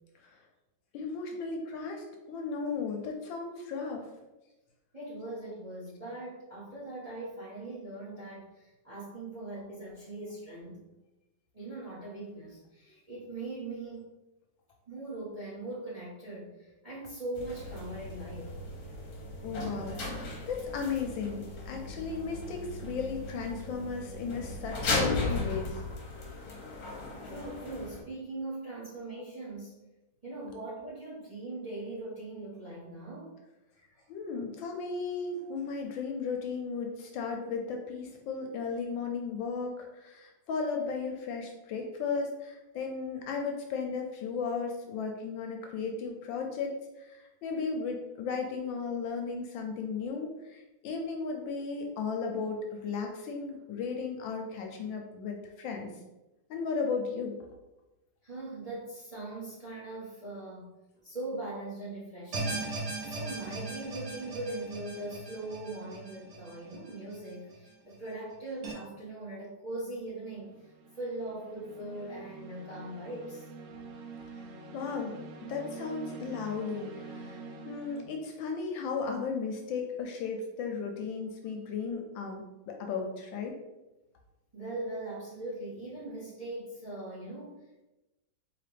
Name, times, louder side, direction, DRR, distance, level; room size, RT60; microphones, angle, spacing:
voice 1, 0.9-4.1 19.4-20.0 20.5-25.8 34.1-46.7 47.0-55.9 56.5-57.4 74.7-75.2 75.5-83.5, left 5 dB, 75° left, 2 dB, 1.2 m, -35 dB
voice 2, 4.9-10.8 11.5-14.0 14.9-18.5 27.2-29.8 30.2-33.4 33.8-34.0 35.4-35.5 58.2-62.7 63.0-70.6 70.9-73.5 84.5-87.8, right 2 dB, 25° right, -7 dB, 0.9 m, -40 dB
sound 1, 17.4-28.0, left 2 dB, 60° left, 1.1 m, -36 dB
sound 2, 62.3-67.6 67.9-68.0 68.6-68.7, right 3 dB, 60° right, 0.8 m, -38 dB
sound 3, 63.9-64.3 70.2-78.0, right 3 dB, 85° right, 1.5 m, -46 dB
3.9 x 3.2 x 3.3 m, 1.0 s
omnidirectional pair, 2.2 m